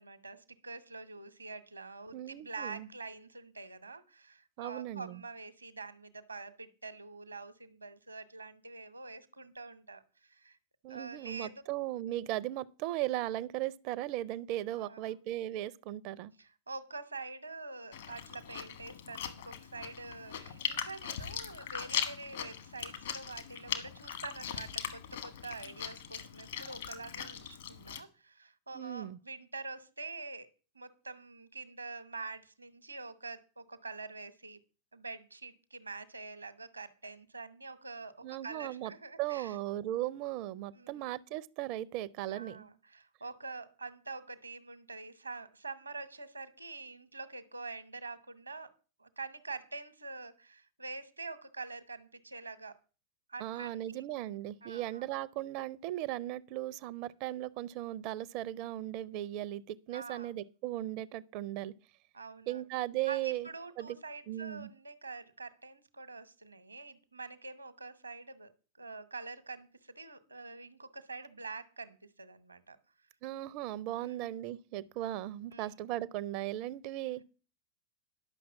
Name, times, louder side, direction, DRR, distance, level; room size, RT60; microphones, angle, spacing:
voice 1, 0.0-10.6 10.9-11.6 14.8-15.1 16.4-30.5 30.7-34.6 34.9-39.6 40.7-41.1 42.3-48.7 49.0-52.8 53.3-54.0 54.6-55.0 59.9-60.3 62.1-62.6 63.1-68.5 68.8-72.8 75.5-75.7 77.1-77.2, right 3 dB, 80° right, 1.0 m, -46 dB
voice 2, 2.1-2.9 4.6-5.2 10.8-16.3 28.7-29.2 38.2-38.9 39.2-42.7 53.4-61.7 62.5-63.5 63.8-64.0 64.3-64.7 73.2-77.2, right 14 dB, 45° right, 0.5 m, -37 dB
Chewing mastication, 17.9-28.0, left 8 dB, 60° left, 1.4 m, -40 dB
11.0 x 6.1 x 7.2 m
figure-of-eight pair, 90°, 0 cm